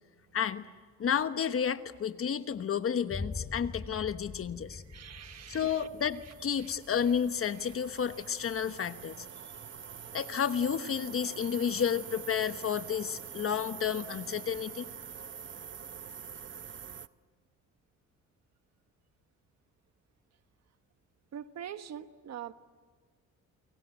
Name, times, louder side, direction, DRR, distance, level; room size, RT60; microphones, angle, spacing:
voice 1, 0.3-0.7 1.0-4.8 5.5-9.2 10.1-14.8, left 8 dB, 50° left, 11 dB, 1.2 m, -31 dB
Boom, 3.1-10.9, left 4 dB, 25° left, 2.4 m, -45 dB
sound 1, 4.9-17.1, right 8 dB, 40° right, 0.8 m, -46 dB
voice 2, 4.9-5.9 6.6-6.7 21.3-22.5, right 9 dB, 60° right, 10 dB, 1.3 m, -43 dB
30.0 x 23.0 x 7.9 m, 1.5 s
cardioid pair, 90°, 30 cm